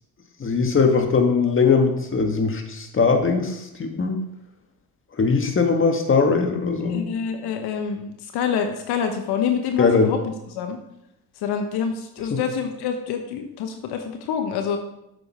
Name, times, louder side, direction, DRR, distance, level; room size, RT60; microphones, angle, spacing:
voice 1, 0.4-4.2 5.1-7.0 9.8-10.1 12.3-12.4, left 4 dB, 30° left, 4 dB, 1.7 m, -20 dB
voice 2, 6.9-10.2 10.5-10.8 11.4-14.8, left 7 dB, 80° left, 5 dB, 1.1 m, -26 dB
8.4 x 7.0 x 4.3 m, 0.82 s
supercardioid pair, 75°, 39 cm